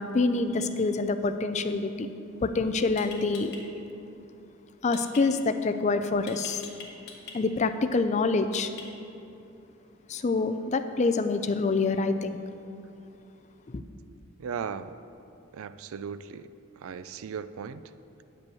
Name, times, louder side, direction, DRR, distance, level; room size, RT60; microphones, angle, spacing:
voice 1, 0.0-2.1 2.4-3.6 4.8-6.6 7.3-8.7 10.1-12.4 13.7-13.8, left 3 dB, 35° left, 9 dB, 0.4 m, -26 dB
sound 1, 3.0-3.6 4.9-5.2 6.3-7.4 8.5-9.1, left 5 dB, 50° left, 1.4 m, -43 dB
voice 2, 14.4-14.9 15.5-16.5 16.8-17.8, right 6 dB, 75° right, 14 dB, 0.4 m, -37 dB
9.4 x 5.3 x 6.9 m, 2.8 s
head